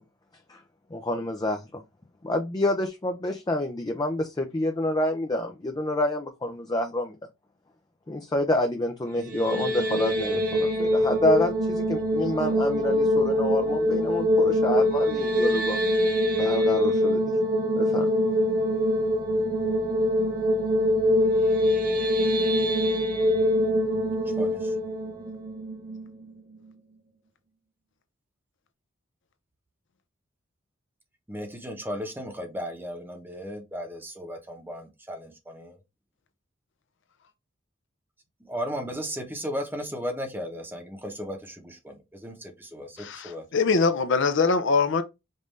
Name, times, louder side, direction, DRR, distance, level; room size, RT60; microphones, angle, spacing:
voice 1, 0.9-1.8 2.2-7.2 8.1-15.8 16.4-17.2 17.8-18.1, left 1 dB, 20° left, 0.5 m, -28 dB
sound 1, 9.2-26.3, equal, 45° right, 1.3 m, -24 dB
voice 2, 24.3-24.7 31.3-35.8 38.4-43.4, equal, 10° right, 0.9 m, -35 dB
voice 3, 43.0-45.0, left 4 dB, 65° left, 0.6 m, -23 dB
5.3 x 2.6 x 3.2 m
head